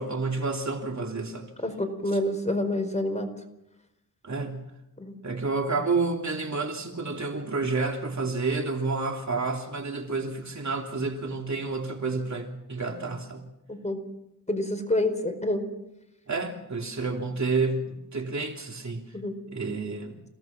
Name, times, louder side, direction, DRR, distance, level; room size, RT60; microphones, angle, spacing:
voice 1, 0.0-1.5 4.2-4.7 5.2-13.4 16.3-19.1 19.5-20.2, right 3 dB, 45° right, 3 dB, 3.1 m, -30 dB
voice 2, 1.6-3.3 5.0-5.1 13.7-14.0 14.5-15.6 19.1-19.4, left 1 dB, 15° left, 6 dB, 4.5 m, -27 dB
29.0 x 18.0 x 6.0 m, 0.87 s
wide cardioid pair, 90°, 40 cm